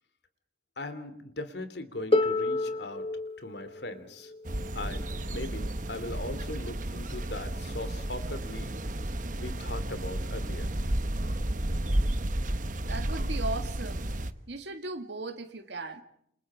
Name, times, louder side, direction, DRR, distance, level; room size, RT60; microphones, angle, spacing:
voice 1, 0.8-3.1 3.4-4.3 4.7-8.8 9.3-10.7, left 2 dB, 65° left, 3.0 m, -39 dB
Harp, 2.1-7.9 9.0-9.1, left 2 dB, 30° left, 1.4 m, -33 dB
sound 1, 4.5-14.3, right 1 dB, 45° right, 1.2 m, -32 dB
voice 2, 12.9-14.1 14.5-16.0, right 2 dB, 75° right, 2.1 m, -37 dB
28.5 x 28.5 x 5.0 m
head